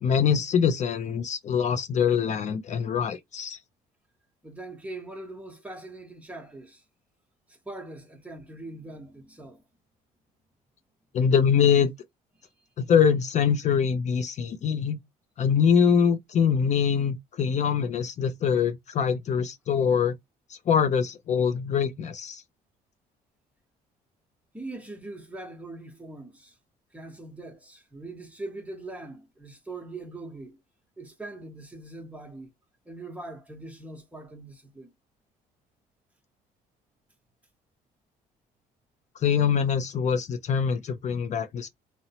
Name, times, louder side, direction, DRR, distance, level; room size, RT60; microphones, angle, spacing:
voice 1, 0.0-3.6 11.1-11.9 12.8-15.0 15.4-20.1 20.5-22.4 39.2-41.7, left 7 dB, 45° left, 0.4 m, -24 dB
voice 2, 4.4-6.8 7.5-9.6 12.4-12.5 24.5-26.6 26.9-30.6 31.0-32.5 32.9-34.9, right 2 dB, 10° right, 0.8 m, -41 dB
2.8 x 2.0 x 2.7 m
cardioid pair, 110°, 17 cm